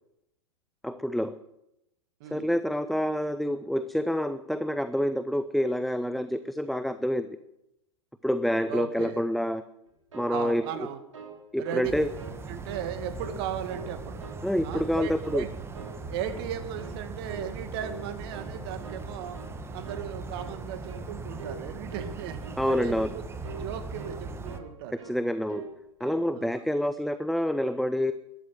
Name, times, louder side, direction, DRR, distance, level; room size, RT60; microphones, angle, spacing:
voice 1, 0.8-1.4 2.3-7.3 8.2-9.6 10.1-10.6 11.5-12.1 14.4-15.4 22.6-23.1 25.0-25.6 26.0-28.1, equal, ahead, 13 dB, 0.6 m, -27 dB
voice 2, 2.2-2.5 8.7-9.2 10.3-11.0 11.6-11.9 12.5-14.2 14.6-15.5 16.1-19.4 19.7-23.2 23.5-25.0 26.3-26.6, right 10 dB, 50° right, 9 dB, 2.1 m, -36 dB
sound 1, 9.9-11.4 11.7-11.9 12.2-12.9 13.2-13.9 14.2-15.0 15.2-15.5 15.7-16.5 16.8-17.0 17.3-17.5 17.8-18.5 18.8-19.1 19.3-19.6 19.8-20.1 20.4-20.6 20.9-21.1 21.4-21.6 21.9-22.1 22.4-22.6 22.9-23.2 23.4-23.7 24.0-24.7 25.0-25.2 25.5-25.7 26.0-26.3, right 4 dB, 80° right, 3.5 m, -43 dB
sound 2, 11.8-24.6, right 3 dB, 15° right, 1.3 m, -39 dB
13.5 x 12.5 x 7.6 m, 0.86 s
figure-of-eight pair, 100°, 16 cm